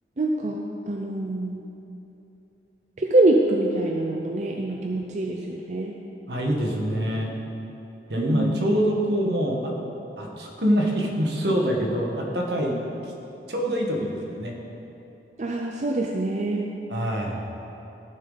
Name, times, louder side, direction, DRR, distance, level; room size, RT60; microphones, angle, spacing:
voice 1, 0.2-1.6 3.0-6.0 8.2-8.6 15.4-16.7, right 2 dB, 40° right, 0 dB, 0.5 m, -25 dB
voice 2, 6.3-7.3 8.1-9.7 10.2-12.7 13.5-14.5 16.9-17.4, equal, 75° right, 0 dB, 1.5 m, -25 dB
14.5 x 6.6 x 4.0 m, 2.9 s
head